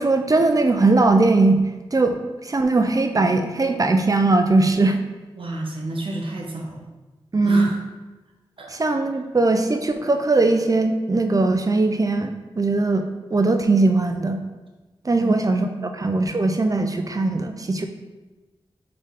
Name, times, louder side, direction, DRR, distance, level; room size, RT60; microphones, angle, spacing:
voice 1, 0.0-1.6 1.9-2.2 2.4-5.0 7.3-7.7 8.7-14.4 15.0-15.7 15.9-17.9, right 3 dB, 35° right, 6 dB, 0.5 m, -20 dB
voice 2, 5.4-6.9 7.4-7.8 8.6-8.7 15.1-15.5 15.8-15.9, right 1 dB, 65° right, 0 dB, 0.9 m, -30 dB
4.0 x 3.2 x 3.6 m, 1.2 s
cardioid pair, 40°, 10 cm